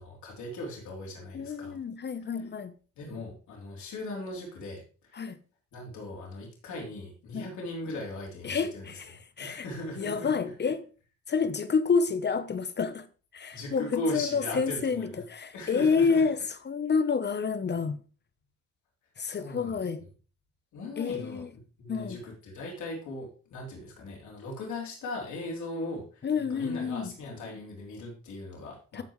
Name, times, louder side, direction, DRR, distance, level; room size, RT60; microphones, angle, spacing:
voice 1, 0.0-1.8 3.0-5.3 5.7-8.9 9.4-10.4 13.5-15.2 15.5-16.2 19.2-19.8 20.7-21.5 21.8-29.0, left 2 dB, 70° left, 3.5 m, -38 dB
voice 2, 1.3-2.7 5.1-5.4 7.3-7.5 8.4-9.7 10.0-10.8 11.3-13.1 13.3-16.4 16.6-18.0 19.2-20.0 21.0-21.5 21.9-22.2 26.2-27.1 28.9-29.0, left 5 dB, 35° left, 0.8 m, -29 dB
14.5 x 5.5 x 3.1 m
cardioid pair, 90°, 30 cm